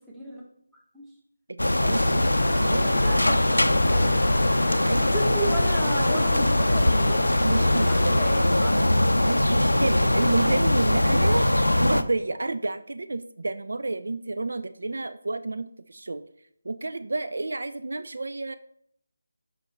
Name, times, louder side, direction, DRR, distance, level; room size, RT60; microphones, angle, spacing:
voice 1, 0.1-0.4 0.9-1.0 1.8-2.1 2.7-4.2 4.7-9.0, right 1 dB, 5° right, -5 dB, 1.1 m, -34 dB
voice 2, 1.5-2.4 2.6-2.9 4.9-5.1 7.4-8.2 9.2-16.2 16.7-18.6, right 2 dB, 65° right, 11 dB, 0.3 m, -30 dB
sound 1, 1.6-12.0, left 1 dB, 85° left, 0.4 m, -21 dB
sound 2, 1.8-8.5, left 5 dB, 25° left, 0.5 m, -37 dB
5.8 x 5.3 x 3.3 m, 0.67 s
figure-of-eight pair, 155°, 0 cm